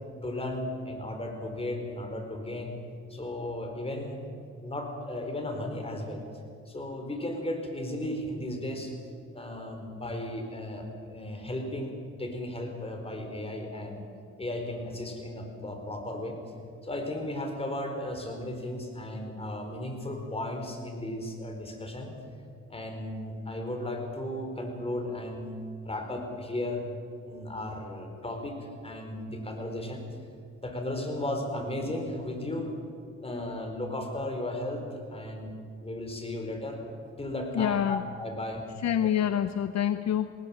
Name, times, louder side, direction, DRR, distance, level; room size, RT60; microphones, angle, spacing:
voice 1, 0.2-2.7 3.1-4.2 4.6-6.2 6.7-8.9 9.3-11.9 12.2-14.0 14.4-16.3 16.8-22.1 22.7-25.5 25.8-26.8 27.2-30.0 30.6-32.7 33.2-35.5 35.8-36.8 37.2-38.6, left 1 dB, 20° left, 3 dB, 4.5 m, -35 dB
voice 2, 37.5-38.0 38.8-40.3, left 10 dB, 60° left, 12 dB, 0.7 m, -26 dB
19.5 x 18.5 x 7.4 m, 2.3 s
cardioid pair, 90°, 30 cm